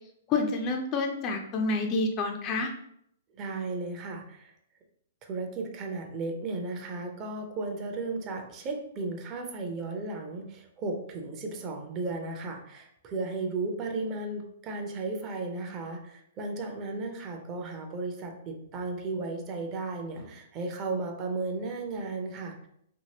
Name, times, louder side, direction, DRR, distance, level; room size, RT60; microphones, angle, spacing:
voice 1, 0.3-2.7, left 3 dB, 30° left, 4 dB, 0.4 m, -28 dB
voice 2, 3.4-4.5 5.2-22.7, right 3 dB, 30° right, 3 dB, 0.5 m, -35 dB
2.8 x 2.7 x 2.7 m, 0.71 s
figure-of-eight pair, 110°, 0 cm